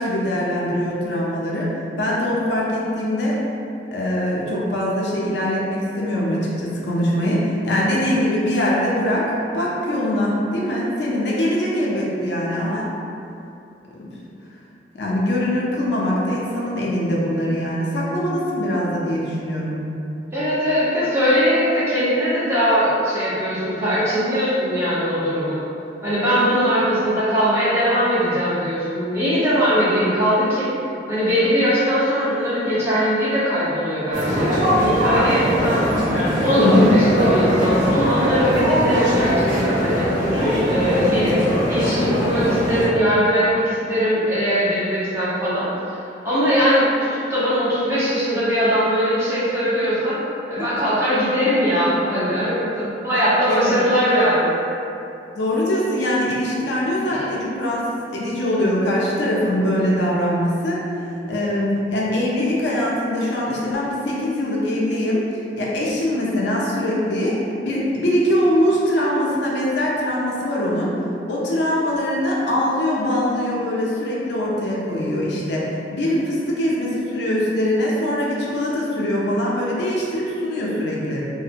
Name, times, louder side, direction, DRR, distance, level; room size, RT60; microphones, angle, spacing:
voice 1, 0.0-1.7 2.0-3.4 3.9-9.3 9.5-12.9 13.9-14.1 14.9-19.8 41.0-41.2 50.6-50.7 53.5-53.7 55.4-57.8 58.1-65.2 65.6-67.4 67.6-70.9 71.3-81.3, left 1 dB, 75° left, -5 dB, 0.5 m, -22 dB
voice 2, 20.3-25.6 26.0-30.7 31.1-35.8 36.4-40.1 40.6-46.0 46.2-50.2 50.5-54.6 57.1-57.3, equal, 15° right, -11 dB, 0.6 m, -20 dB
sound 1, 34.1-42.9, equal, 45° right, 0.8 m, -20 dB
2.7 x 2.1 x 2.4 m, 2.7 s
head